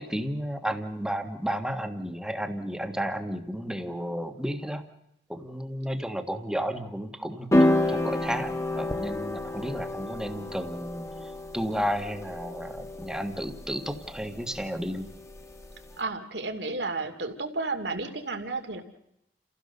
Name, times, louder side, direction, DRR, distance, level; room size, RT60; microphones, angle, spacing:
voice 1, 0.0-4.9 5.3-8.5 8.8-11.0 11.5-15.1, equal, 5° right, 6 dB, 1.6 m, -32 dB
sound 1, 7.5-15.9, left 1 dB, 15° left, 1.4 m, -29 dB
voice 2, 16.0-18.8, right 3 dB, 70° right, 6 dB, 2.6 m, -32 dB
29.5 x 16.0 x 6.7 m, 0.80 s
head